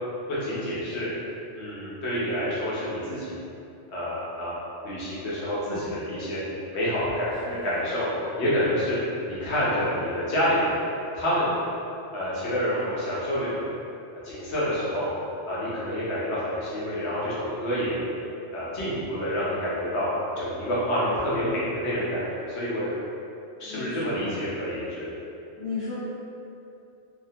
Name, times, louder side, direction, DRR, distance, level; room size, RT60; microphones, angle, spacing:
voice 1, 0.3-1.1 1.6-3.4 3.9-4.6 4.8-6.4 6.7-8.1 8.4-9.0 9.2-10.8 11.1-11.5 12.1-13.6 14.2-15.1 15.5-18.0 18.5-20.1 20.4-22.9 23.6-25.1, equal, 65° left, -9 dB, 1.0 m, -28 dB
voice 2, 7.4-7.9 23.7-24.3 25.6-25.9, left 4 dB, 25° right, -14 dB, 0.7 m, -35 dB
2.6 x 2.1 x 2.6 m, 2.7 s
omnidirectional pair, 1.2 m